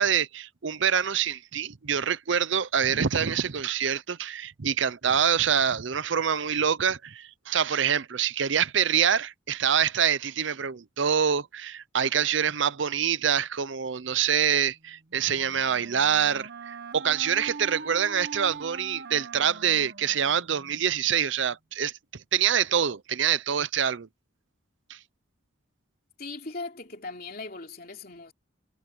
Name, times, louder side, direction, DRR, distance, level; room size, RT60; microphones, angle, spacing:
voice 1, 0.0-21.9 22.3-24.1 24.9-25.0, right 8 dB, 65° right, 0.6 m, -25 dB
Wind instrument woodwind instrument, 15.1-20.9, right 4 dB, 50° right, 1.0 m, -42 dB
voice 2, 26.2-28.3, left 3 dB, 45° left, 3.2 m, -39 dB
head